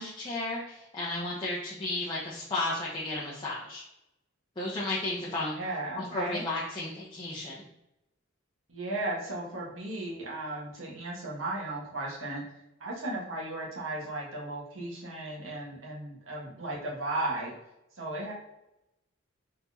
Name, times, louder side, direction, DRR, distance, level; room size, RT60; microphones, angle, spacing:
voice 1, 0.0-3.8 4.6-5.6 6.0-7.5, left 2 dB, 25° left, -6 dB, 0.7 m, -33 dB
voice 2, 5.5-6.4 8.7-12.4 12.8-17.5 17.9-18.3, right 2 dB, 75° right, -3 dB, 1.4 m, -35 dB
4.1 x 4.1 x 2.8 m, 0.88 s
head